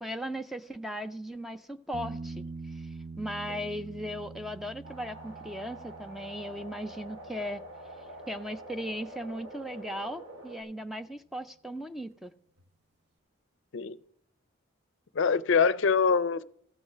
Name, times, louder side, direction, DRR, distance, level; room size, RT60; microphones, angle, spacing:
voice 1, 0.0-7.6 8.0-12.3, equal, ahead, 0.3 m, -38 dB
sound 1, 1.9-9.5 12.6-12.7, right 3 dB, 50° right, 0.7 m, -45 dB
sound 2, 4.8-10.6, right 1 dB, 65° right, 3.3 m, -46 dB
voice 2, 15.1-16.4, left 5 dB, 60° left, 0.5 m, -24 dB
14.5 x 6.4 x 4.9 m
head